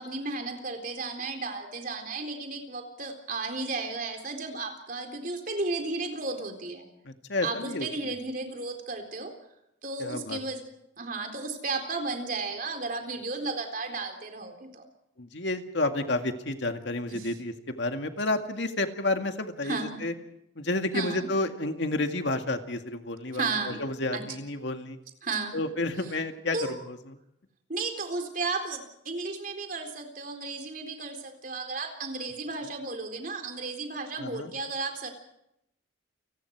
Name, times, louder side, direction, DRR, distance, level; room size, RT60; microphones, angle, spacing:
voice 1, 0.0-6.9 7.4-9.3 9.8-10.6 11.0-14.8 17.1-17.3 19.6-20.0 20.9-21.3 23.3-23.8 24.1-24.2 25.2-25.6 26.5-26.8 27.7-35.1, right 3 dB, 45° right, 5 dB, 4.0 m, -34 dB
voice 2, 7.1-8.1 10.0-10.4 15.2-20.1 20.6-25.0 25.5-27.2 34.2-34.5, left 2 dB, 70° left, 6 dB, 2.0 m, -31 dB
29.5 x 19.0 x 4.7 m, 0.80 s
head